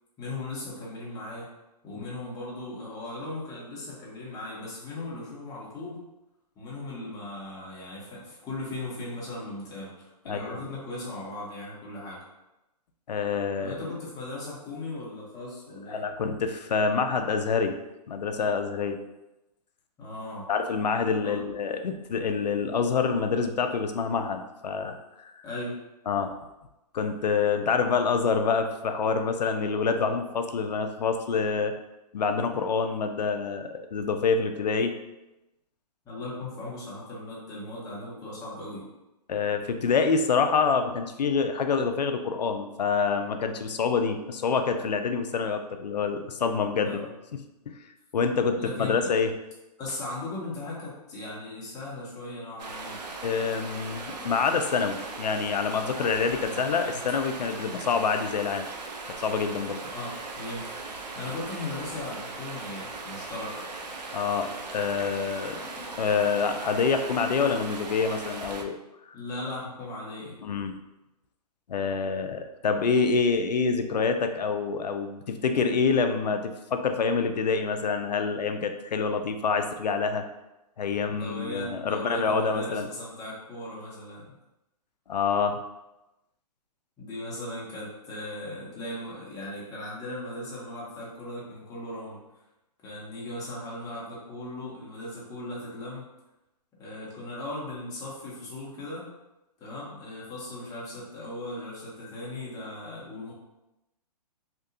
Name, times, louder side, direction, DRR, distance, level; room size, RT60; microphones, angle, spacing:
voice 1, 0.2-1.5 1.8-6.0 6.6-12.2 13.6-16.1 20.0-20.4 21.2-21.5 25.4-25.8 36.0-38.9 46.8-47.0 48.6-49.1 49.8-53.0 56.3-57.0 59.9-60.7 61.1-63.6 69.1-70.3 81.1-84.3 87.0-92.2 92.8-96.1 96.8-99.1 99.6-103.3, left 2 dB, 15° left, -6 dB, 0.8 m, -38 dB
voice 2, 10.3-10.6 13.1-13.8 15.9-17.8 18.1-19.0 20.5-25.3 26.1-26.3 26.9-31.7 32.1-34.9 39.3-47.1 47.7-47.8 48.1-49.3 53.2-58.7 59.2-59.8 64.1-68.8 70.4-70.8 71.7-80.2 80.8-82.9 85.1-85.6, left 5 dB, 90° left, 7 dB, 0.4 m, -27 dB
Stream, 52.6-68.6, right 3 dB, 85° right, 0.5 m, -39 dB
2.8 x 2.3 x 2.5 m, 0.95 s
hypercardioid pair, 140°, 21 cm